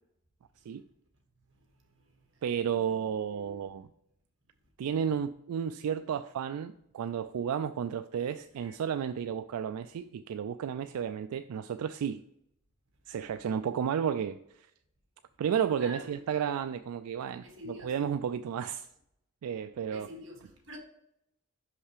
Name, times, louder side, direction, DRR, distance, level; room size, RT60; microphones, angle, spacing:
voice 1, 1.5-2.4 2.7-3.8 8.2-8.3 8.6-8.8 15.8-16.6 17.4-17.9 19.8-20.8, equal, 55° right, 1.6 m, -49 dB
voice 2, 2.4-3.9 4.8-12.2 13.1-14.7 15.4-18.9 19.4-20.1, right 8 dB, 85° right, 0.3 m, -32 dB
5.8 x 5.5 x 4.9 m
head